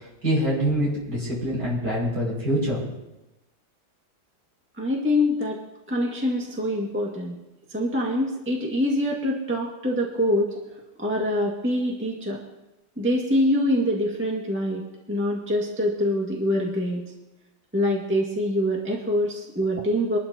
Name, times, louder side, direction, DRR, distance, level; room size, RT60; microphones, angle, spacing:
voice 1, 0.2-2.8, equal, 50° right, -5 dB, 6.4 m, -25 dB
voice 2, 4.8-5.6 5.9-7.4 7.7-10.5 11.0-12.4 13.0-17.1 17.7-20.2, left 1 dB, 5° right, -2 dB, 1.7 m, -25 dB
25.5 x 12.0 x 2.9 m, 0.98 s
omnidirectional pair, 2.1 m